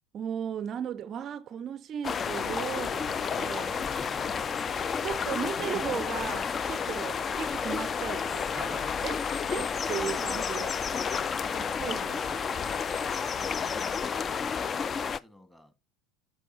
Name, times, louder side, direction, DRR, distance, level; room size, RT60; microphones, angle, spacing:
voice 1, 0.1-3.8 5.0-9.2 9.5-10.8 11.1-12.4, right 9 dB, 40° right, 0.4 m, -36 dB
sound 1, 2.0-15.2, left 6 dB, 30° left, 0.4 m, -31 dB
Piano, 2.3-12.5, equal, 65° left, 2.8 m, -53 dB
sound 2, 8.1-13.9, left 1 dB, 90° left, 1.2 m, -57 dB
voice 2, 8.5-9.9 11.4-12.2 13.4-15.7, left 1 dB, 10° left, 2.0 m, -52 dB
11.0 x 5.9 x 2.9 m
figure-of-eight pair, 70°, 0 cm